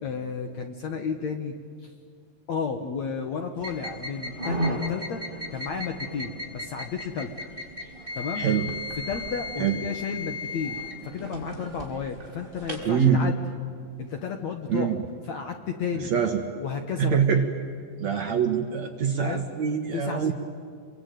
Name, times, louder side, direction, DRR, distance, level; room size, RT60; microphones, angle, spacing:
voice 1, 0.0-1.5 1.8-1.9 2.5-5.2 5.5-7.3 8.2-8.5 9.0-13.4 14.0-15.0 15.3-16.1 16.6-17.2 19.2-19.4 19.9-20.3, left 6 dB, 60° left, 5 dB, 2.0 m, -32 dB
sound 1, 3.6-12.9, left 1 dB, 15° right, 4.5 m, -35 dB
voice 2, 8.4-8.7 9.6-9.8 12.9-13.2 14.7-15.0 16.1-16.4 17.0-17.5 18.0-20.3, right 7 dB, 60° right, 4 dB, 2.1 m, -24 dB
27.0 x 23.0 x 9.2 m, 2.3 s
omnidirectional pair, 4.6 m